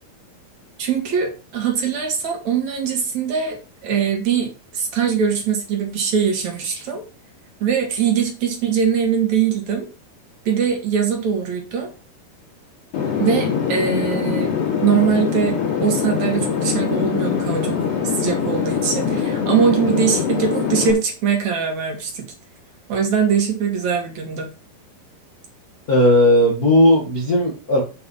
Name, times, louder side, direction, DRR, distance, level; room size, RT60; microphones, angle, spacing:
voice 1, 0.8-7.0 7.6-9.9 10.4-11.9 13.2-14.5 14.8-22.3 22.9-24.5, right 7 dB, 50° right, 2 dB, 3.0 m, -22 dB
sound 1, 12.9-20.9, left 7 dB, 85° left, 5.1 m, -23 dB
voice 2, 25.9-27.8, left 1 dB, 55° left, 0 dB, 1.0 m, -15 dB
9.4 x 5.5 x 5.6 m, 0.34 s
omnidirectional pair, 4.6 m